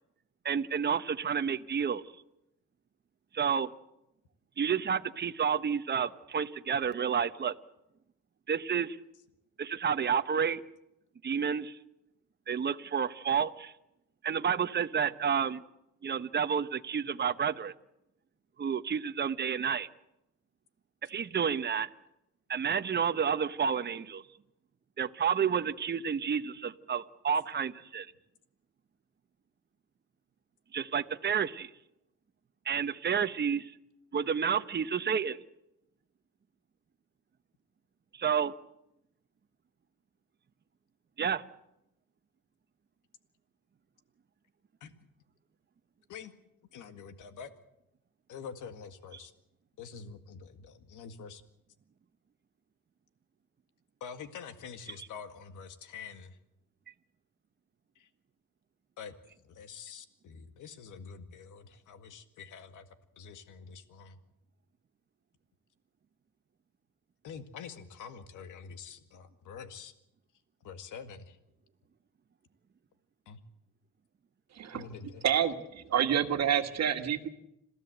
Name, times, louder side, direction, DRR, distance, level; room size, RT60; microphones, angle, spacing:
voice 1, 0.4-2.0 3.3-3.7 4.6-7.5 8.5-9.0 9.6-10.6 11.2-11.7 12.5-13.7 14.2-15.6 16.0-17.7 18.6-19.9 21.1-21.9 22.5-24.2 25.0-28.1 30.7-31.7 32.7-33.7 34.1-35.4 38.1-38.5 41.2-41.4, right 7 dB, 35° right, 11 dB, 1.0 m, -30 dB
voice 2, 46.7-47.5 48.3-49.3 49.8-51.4 54.0-56.4 58.0-58.1 59.0-62.9 63.2-64.2 67.2-69.9 70.6-71.4 73.3-73.4 74.7-75.2, left 6 dB, 80° left, 9 dB, 1.9 m, -46 dB
voice 3, 74.5-77.3, right 9 dB, 60° right, 7 dB, 1.9 m, -29 dB
27.0 x 15.0 x 7.9 m, 0.86 s
cardioid pair, 90°, 30 cm